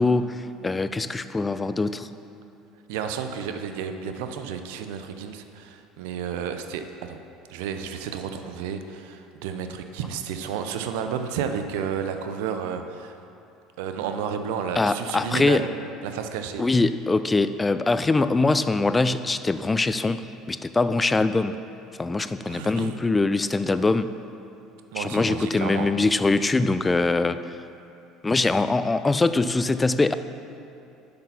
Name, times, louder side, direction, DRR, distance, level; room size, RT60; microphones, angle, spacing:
voice 1, 0.0-2.1 14.8-15.6 16.6-20.2 20.5-21.6 22.0-24.1 25.0-27.4 28.2-30.1, left 3 dB, 15° left, 12 dB, 0.3 m, -23 dB
voice 2, 2.9-7.2 7.5-13.2 13.8-15.7 16.0-16.6 22.5-23.0 24.9-25.9, right 7 dB, 85° right, 7 dB, 0.5 m, -31 dB
6.6 x 6.0 x 5.7 m, 2.7 s
supercardioid pair, 95°, 0 cm